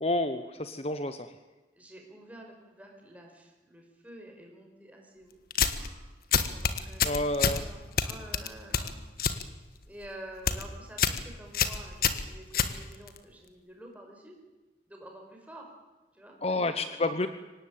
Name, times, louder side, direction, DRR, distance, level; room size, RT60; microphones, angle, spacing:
voice 1, 0.0-1.3 7.0-7.6 16.4-17.3, left 2 dB, 35° left, 10 dB, 1.0 m, -29 dB
voice 2, 1.8-5.4 5.6-6.2 6.5-9.0 9.9-14.4 14.9-15.7 16.1-16.9, right 1 dB, 10° right, 1 dB, 5.4 m, -49 dB
sound 1, 5.5-5.9 6.3-7.6 8.0-9.4 9.8-10.1 10.3-10.6 11.0-11.2 11.5-13.2, left 6 dB, 55° left, 1.6 m, -27 dB
24.5 x 18.5 x 8.7 m, 1.2 s
head